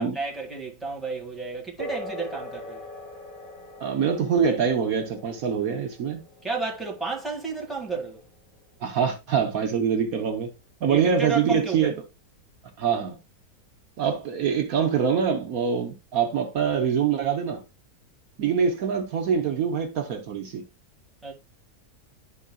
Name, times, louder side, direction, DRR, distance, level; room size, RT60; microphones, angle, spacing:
voice 1, 0.0-2.8 6.4-8.2 10.9-11.9 21.2-21.3, right 4 dB, ahead, 1.6 m, -31 dB
sound 1, 1.8-9.8, left 1 dB, 20° left, 3.3 m, -42 dB
voice 2, 3.8-6.2 8.8-10.5 10.8-11.9 12.8-13.2 14.0-17.6 18.4-20.6, right 7 dB, 70° right, 1.4 m, -24 dB
11.5 x 4.6 x 2.2 m
omnidirectional pair, 1.6 m